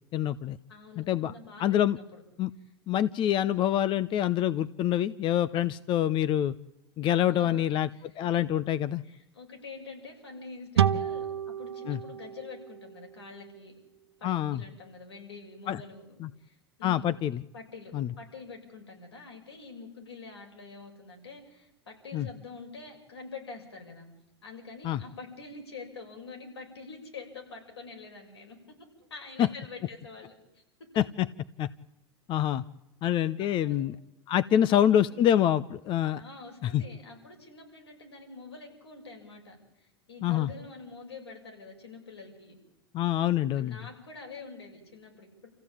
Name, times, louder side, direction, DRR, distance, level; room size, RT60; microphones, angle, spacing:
voice 1, 0.1-0.6 1.0-1.3 1.6-2.0 2.4-2.5 2.9-6.5 7.0-7.9 8.2-9.0 11.9-12.0 14.2-14.6 15.7-15.8 16.2-16.3 16.8-17.4 17.9-18.1 22.1-22.3 24.8-25.0 29.4-29.5 31.0-31.3 31.6-31.7 32.3-32.6 33.0-34.0 34.3-36.2 36.6-36.8 40.2-40.5 42.9-43.8, left 11 dB, 40° left, 15 dB, 0.7 m, -26 dB
voice 2, 0.7-2.2 7.3-8.3 9.0-13.7 14.2-17.1 17.5-24.1 24.4-28.6 29.1-30.6 33.4-33.8 34.5-35.1 36.2-42.6 43.6-45.5, left 4 dB, 90° left, 1 dB, 6.8 m, -46 dB
sound 1, 10.8-14.1, right 9 dB, 85° right, 1.0 m, -31 dB
28.0 x 15.0 x 8.8 m, 0.92 s
hypercardioid pair, 95°, 13 cm